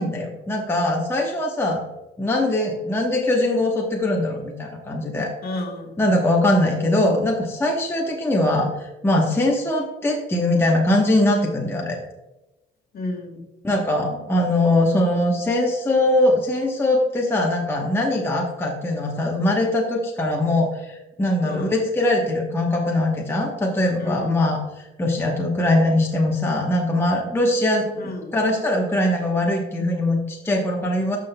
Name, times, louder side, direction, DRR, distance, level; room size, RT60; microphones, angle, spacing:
voice 1, 0.0-1.8 2.2-5.3 6.0-12.0 13.6-31.2, left 1 dB, 10° left, -1 dB, 1.0 m, -21 dB
voice 2, 5.4-5.9 12.9-13.5 21.4-21.7 24.0-24.5 28.0-28.3, left 2 dB, 45° left, 3 dB, 1.7 m, -32 dB
12.5 x 5.8 x 2.2 m, 1.0 s
cardioid pair, 125°, 21 cm